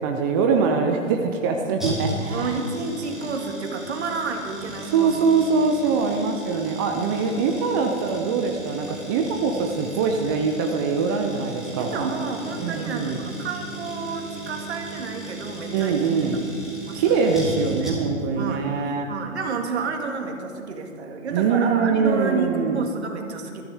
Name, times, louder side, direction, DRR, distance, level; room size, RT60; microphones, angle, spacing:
voice 1, 0.0-2.6 4.9-12.1 12.6-13.2 15.7-16.5 17.0-19.1 21.3-22.9, right 5 dB, 15° right, 3 dB, 0.5 m, -23 dB
sound 1, 1.8-18.3 18.5-18.6, right 1 dB, ahead, 3.5 m, -36 dB
voice 2, 2.3-5.2 11.3-11.4 11.7-16.0 16.8-17.2 18.4-18.7 19.1-23.6, right 4 dB, 55° right, 3 dB, 2.2 m, -30 dB
20.5 x 13.5 x 3.7 m, 2.2 s
figure-of-eight pair, 125°, 40 cm